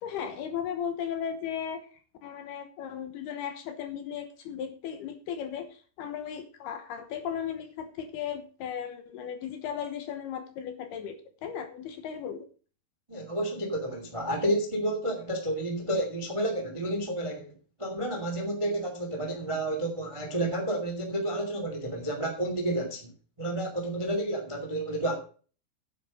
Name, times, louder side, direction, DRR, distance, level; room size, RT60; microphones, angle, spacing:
voice 1, 0.0-1.9 2.2-12.5, left 8 dB, 70° left, 8 dB, 2.7 m, -36 dB
voice 2, 13.1-17.5 17.8-23.1 23.4-25.2, right 1 dB, 20° right, 3 dB, 0.7 m, -30 dB
9.5 x 8.4 x 5.1 m, 0.39 s
omnidirectional pair, 5.4 m